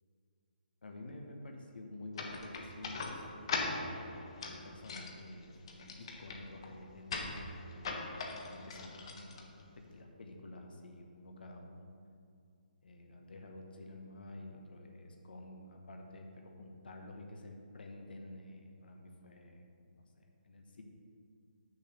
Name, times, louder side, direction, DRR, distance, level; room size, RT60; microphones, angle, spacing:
voice 1, 0.8-3.2 4.4-11.9 12.8-20.8, left 1 dB, 70° left, 2 dB, 1.1 m, -50 dB
sound 1, 2.1-10.0, left 3 dB, 30° left, 0.7 m, -41 dB
6.4 x 5.3 x 6.7 m, 2.3 s
hypercardioid pair, 170°, 5 cm